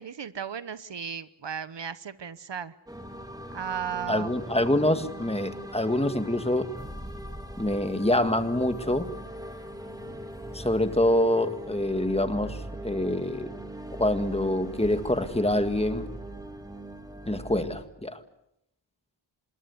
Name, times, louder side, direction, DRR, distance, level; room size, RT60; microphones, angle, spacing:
voice 1, 0.0-2.7 3.5-4.3, right 8 dB, 65° right, 15 dB, 1.0 m, -35 dB
sound 1, 2.9-17.8, right 1 dB, 10° right, 2.5 m, -40 dB
voice 2, 4.1-6.7 7.6-9.1 10.5-13.5 14.0-16.1 17.3-18.2, left 1 dB, 15° left, 9 dB, 1.7 m, -26 dB
26.5 x 21.0 x 8.1 m, 0.80 s
wide cardioid pair, 110°, 46 cm